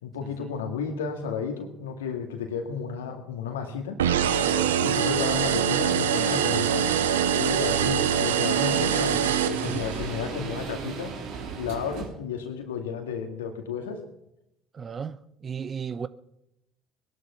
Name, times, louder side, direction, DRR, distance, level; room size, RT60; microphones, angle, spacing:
voice 1, 0.0-4.0 4.8-6.9 7.4-11.1 11.6-14.0, left 6 dB, 85° left, 2.2 m, -32 dB
sound 1, 4.0-10.2, right 8 dB, 85° right, 0.7 m, -24 dB
sound 2, 4.2-12.1, right 7 dB, 70° right, 2.8 m, -35 dB
voice 2, 4.4-4.8 9.6-9.8 14.7-16.1, right 6 dB, 40° right, 0.9 m, -35 dB
20.0 x 11.5 x 5.7 m
hypercardioid pair, 60°, 0 cm